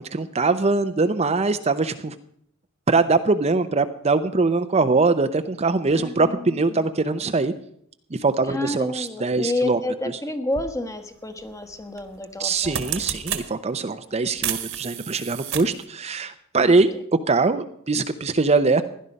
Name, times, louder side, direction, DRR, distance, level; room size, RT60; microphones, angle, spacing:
voice 1, 0.0-2.1 2.9-7.5 8.1-9.8 12.4-16.9 17.3-18.8, right 3 dB, 30° right, 9 dB, 0.6 m, -22 dB
voice 2, 5.9-6.9 8.5-12.9 16.6-17.0, left 1 dB, 15° left, 7 dB, 1.2 m, -30 dB
sound 1, 10.5-10.7 12.0-12.2 12.5-13.5 14.4-15.8, right 9 dB, 60° right, 1.5 m, -30 dB
16.5 x 11.5 x 5.3 m, 0.69 s
head